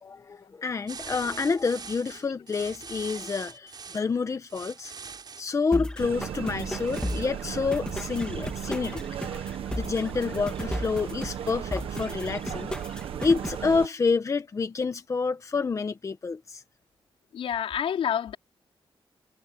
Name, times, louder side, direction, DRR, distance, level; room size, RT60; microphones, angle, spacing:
voice 1, 0.0-4.9 5.4-9.0 9.4-12.7 13.2-16.6, left 4 dB, 35° left, 1.2 m, -28 dB
sound 1, 0.9-4.1 4.5-5.5 6.9-7.3, right 6 dB, 50° right, 6.1 m, -42 dB
sound 2, 5.7-13.7, left 1 dB, 10° left, 2.3 m, -36 dB
sound 3, 6.0-13.9, right 9 dB, 90° right, 1.3 m, -36 dB
voice 2, 17.3-18.4, left 9 dB, 85° left, 4.5 m, -28 dB
wide cardioid pair, 125°, 9 cm